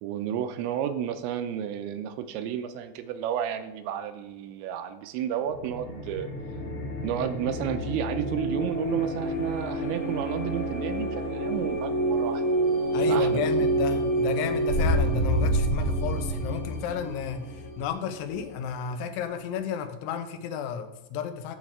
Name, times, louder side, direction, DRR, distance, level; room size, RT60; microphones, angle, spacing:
voice 1, 0.0-6.3 7.0-12.5 13.0-13.5, right 9 dB, 90° right, 8 dB, 3.0 m, -32 dB
sound 1, 5.5-18.9, right 1 dB, 60° left, 3.9 m, -28 dB
voice 2, 12.9-21.6, left 8 dB, 85° left, 9 dB, 3.1 m, -32 dB
12.0 x 7.2 x 3.6 m, 0.98 s
omnidirectional pair, 5.2 m